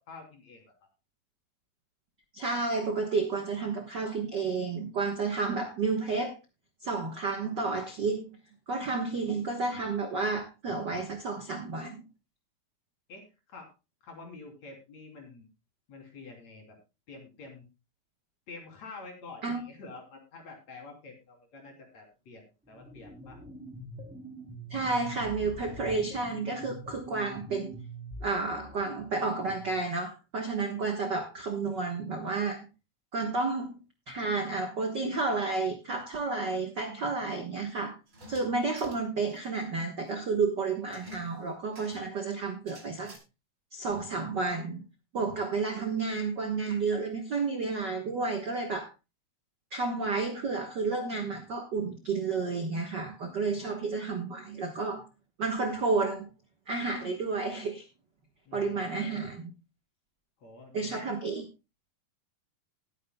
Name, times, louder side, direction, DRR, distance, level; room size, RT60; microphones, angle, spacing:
voice 1, 0.1-0.6 13.1-13.7 14.0-15.5 15.9-16.8 17.1-17.6 18.5-23.4 58.5-59.3 60.4-61.1, left 3 dB, 50° left, 1 dB, 4.2 m, -48 dB
voice 2, 2.3-6.3 6.8-8.4 8.7-12.0 19.4-19.6 24.7-27.8 28.2-32.7 33.1-33.8 34.1-37.9 38.3-43.1 43.7-44.8 45.1-48.9 49.7-55.0 55.4-56.3 56.7-57.8 58.5-59.5 60.7-61.4, right 4 dB, 75° right, 4 dB, 0.9 m, -31 dB
sound 1, 22.7-29.8, equal, 5° right, 2.5 m, -45 dB
sound 2, 38.1-39.5 39.8-39.9 40.1-40.2 40.9-42.1 42.7-43.2, right 2 dB, 25° right, 2.7 m, -47 dB
19.5 x 9.6 x 2.2 m, 0.28 s
omnidirectional pair, 4.1 m